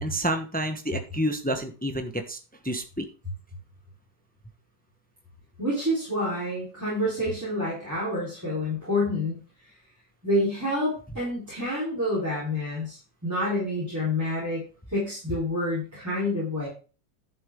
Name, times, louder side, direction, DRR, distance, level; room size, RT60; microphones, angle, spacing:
voice 1, 0.0-2.4 2.6-3.1, right 1 dB, 10° left, 6 dB, 0.6 m, -29 dB
voice 2, 5.6-9.4 10.2-16.7, left 1 dB, 10° right, -6 dB, 4.0 m, -28 dB
11.0 x 7.1 x 3.7 m, 0.36 s
omnidirectional pair, 1.9 m